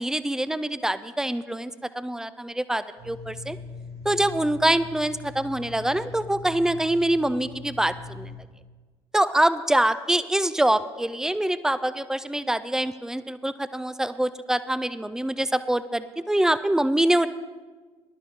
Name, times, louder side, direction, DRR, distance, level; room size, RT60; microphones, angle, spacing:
voice 1, 0.0-3.6 4.0-8.4 9.1-17.3, right 1 dB, 5° right, 14 dB, 0.5 m, -25 dB
sound 1, 3.0-8.4, left 4 dB, 80° right, 2.8 m, -41 dB
20.5 x 12.0 x 3.5 m, 1.4 s
figure-of-eight pair, 55°, 14 cm